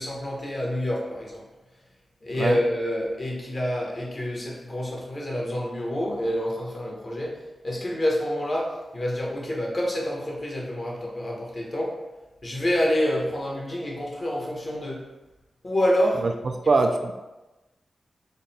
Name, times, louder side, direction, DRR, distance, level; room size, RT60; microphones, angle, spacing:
voice 1, 0.0-1.4 2.2-7.3 7.6-12.0 12.4-15.1 15.6-16.2, equal, 45° left, -2 dB, 1.1 m, -27 dB
voice 2, 16.2-17.1, right 3 dB, 60° right, 5 dB, 0.3 m, -23 dB
3.9 x 2.2 x 4.1 m, 1.1 s
cardioid pair, 60°, 0 cm